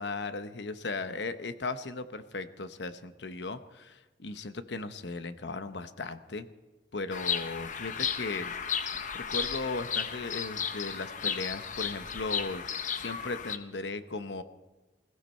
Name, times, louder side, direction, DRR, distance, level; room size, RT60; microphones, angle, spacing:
voice 1, 0.0-6.5 6.9-8.5 9.1-12.6 12.9-14.4, left 3 dB, 75° left, 11 dB, 0.9 m, -37 dB
Bird vocalization bird call bird song, 7.1-13.6, left 7 dB, 45° left, 0.8 m, -34 dB
20.0 x 15.5 x 4.4 m, 1.2 s
head